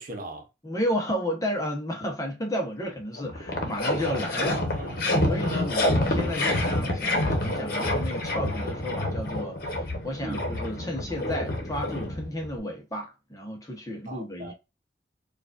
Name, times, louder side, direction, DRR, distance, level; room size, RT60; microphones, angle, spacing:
voice 1, 0.0-0.5 4.2-5.4 10.2-10.5 14.1-14.5, right 2 dB, 50° right, 0.8 m, -40 dB
voice 2, 0.6-4.6 5.3-14.5, equal, 20° left, 0.9 m, -32 dB
sound 1, 2.8-2.9 3.2-12.6, left 1 dB, 50° left, 1.1 m, -28 dB
4.7 x 2.5 x 2.4 m
head